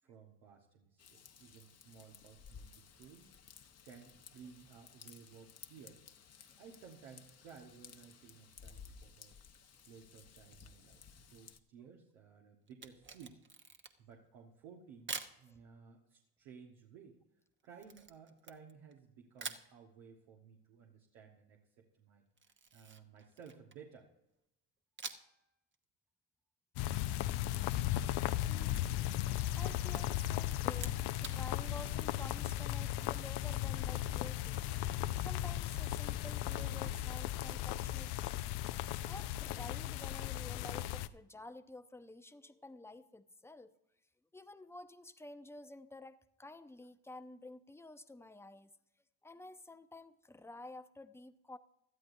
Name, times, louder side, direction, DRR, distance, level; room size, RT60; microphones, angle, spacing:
voice 1, 0.0-6.1 6.6-13.4 14.0-17.2 17.6-24.1, right 6 dB, 75° right, -1 dB, 1.7 m, -57 dB
Raindrop / Vehicle horn car horn honking / Trickle dribble, 1.0-11.6, left 7 dB, 30° left, 1.0 m, -57 dB
Camera, 12.7-14.1 15.1-15.4 17.8-19.0 19.4-19.7 22.4-23.9 25.0-25.4 25.7-25.8 27.8-29.2 29.5-30.0 30.7-31.4, right 5 dB, 25° right, 1.1 m, -47 dB
sound 1, 26.8-41.1, left 13 dB, 55° left, 0.6 m, -36 dB
voice 2, 28.5-34.7 35.2-38.6 39.1-43.7 44.3-48.7 49.2-51.6, left 2 dB, 5° left, 10 dB, 0.7 m, -51 dB
18.0 x 12.5 x 2.7 m, 0.84 s
hypercardioid pair, 70°, 49 cm